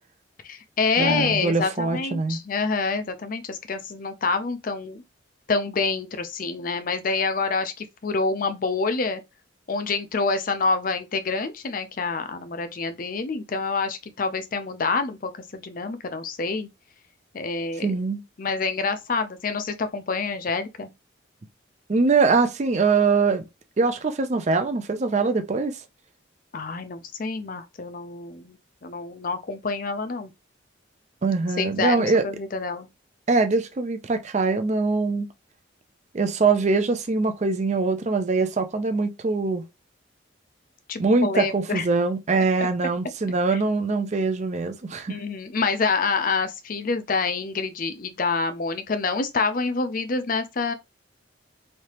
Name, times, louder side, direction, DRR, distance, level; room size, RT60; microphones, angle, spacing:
voice 1, 0.4-5.0 5.5-9.2 9.7-16.7 17.3-17.9 18.4-20.9 26.5-28.6 28.8-30.3 31.6-32.9 40.9-41.9 43.5-43.6 45.1-50.7, left 4 dB, 45° left, 0.5 m, -27 dB
voice 2, 1.0-2.4 17.8-18.2 21.9-23.5 23.8-25.8 31.2-32.2 33.3-35.3 36.1-39.7 41.0-45.2, right 4 dB, 35° right, 0.4 m, -23 dB
3.3 x 2.8 x 2.9 m
head